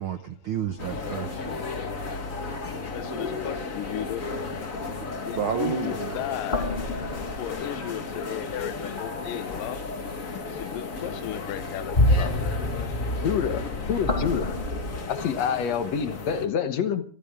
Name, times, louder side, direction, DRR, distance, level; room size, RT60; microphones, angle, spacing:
voice 1, 0.0-1.4 5.4-6.2, right 8 dB, 70° right, 1.2 m, -30 dB
sound 1, 0.6-1.9 2.3-3.1 6.2-8.2 9.0-10.0 10.7-10.8 11.4-15.0, left 1 dB, 20° left, 1.8 m, -29 dB
sound 2, 0.8-16.5, left 4 dB, 35° left, 1.3 m, -34 dB
voice 2, 2.9-4.3 5.2-6.7 7.4-9.8 10.6-12.7, left 13 dB, 85° left, 2.5 m, -35 dB
voice 3, 13.2-14.6 15.1-17.0, left 7 dB, 60° left, 2.2 m, -27 dB
25.5 x 14.0 x 3.7 m
omnidirectional pair, 3.8 m